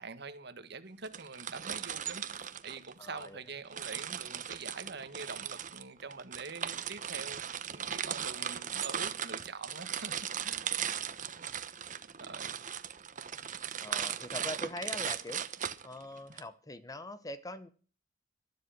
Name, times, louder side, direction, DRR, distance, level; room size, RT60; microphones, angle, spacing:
voice 1, 0.0-7.4 7.7-10.7 12.2-12.6, right 4 dB, 60° right, 1.8 m, -45 dB
sound 1, 1.0-3.3 3.7-16.4, right 8 dB, 45° right, 1.1 m, -38 dB
voice 2, 3.0-3.4 13.8-15.4 15.8-17.7, left 1 dB, 20° left, 1.0 m, -42 dB
13.0 x 12.5 x 5.9 m
head